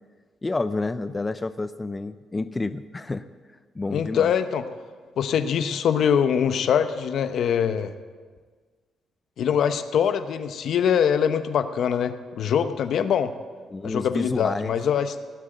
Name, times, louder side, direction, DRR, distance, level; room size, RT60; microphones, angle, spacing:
voice 1, 0.4-3.2 3.8-4.3 13.7-14.7, left 3 dB, 20° left, 12 dB, 0.5 m, -29 dB
voice 2, 3.9-4.7 5.2-7.9 9.4-13.3 13.8-15.2, left 8 dB, 70° left, 10 dB, 0.9 m, -23 dB
18.0 x 8.5 x 7.8 m, 1.5 s
cardioid pair, 90°, 0 cm